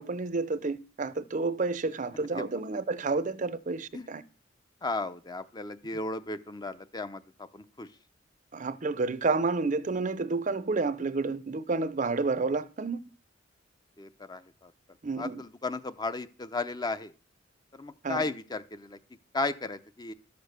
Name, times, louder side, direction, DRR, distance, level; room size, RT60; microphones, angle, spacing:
voice 1, 0.0-4.2 8.5-13.0 15.0-15.4 18.0-18.3, right 3 dB, 40° right, 0.6 m, -30 dB
voice 2, 4.8-7.2 7.5-7.9 14.0-14.7 15.2-17.1 17.7-19.0 19.3-20.1, left 3 dB, 20° left, 0.6 m, -35 dB
12.5 x 6.7 x 6.6 m
head